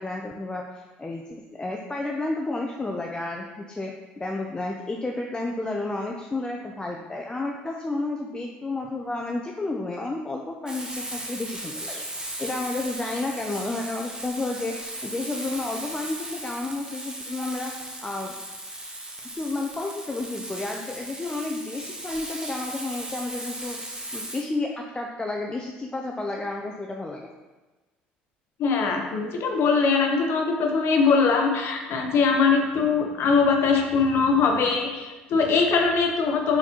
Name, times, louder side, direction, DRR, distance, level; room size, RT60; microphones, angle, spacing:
voice 1, 0.0-18.3 19.3-27.3, left 2 dB, 15° left, 0 dB, 0.4 m, -31 dB
Frying (food), 10.7-24.4, right 1 dB, 15° right, 0.9 m, -37 dB
voice 2, 28.6-36.6, left 4 dB, 55° left, 3 dB, 0.6 m, -22 dB
4.1 x 4.0 x 2.9 m, 1.2 s
hypercardioid pair, 65°, 5 cm